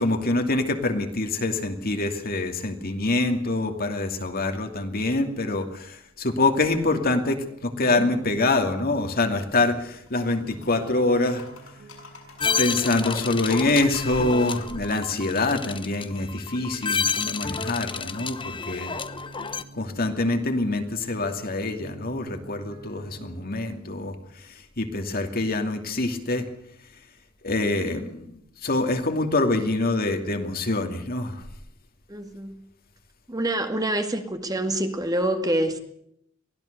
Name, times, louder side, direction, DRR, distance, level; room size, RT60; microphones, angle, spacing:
voice 1, 0.0-11.5 12.6-18.9 19.7-26.5 27.4-31.4, left 2 dB, 50° left, 6 dB, 2.7 m, -25 dB
sound 1, 10.1-10.9 11.2-12.6 13.0-14.7, left 4 dB, 80° left, 7.2 m, -47 dB
sound 2, 10.4-23.5, right 2 dB, 80° right, 3.5 m, -47 dB
sound 3, 12.4-19.6, left 6 dB, 25° left, 1.0 m, -30 dB
voice 2, 32.1-32.6 33.3-35.8, right 1 dB, 20° right, 6 dB, 2.1 m, -26 dB
23.5 x 16.0 x 6.8 m, 0.72 s
head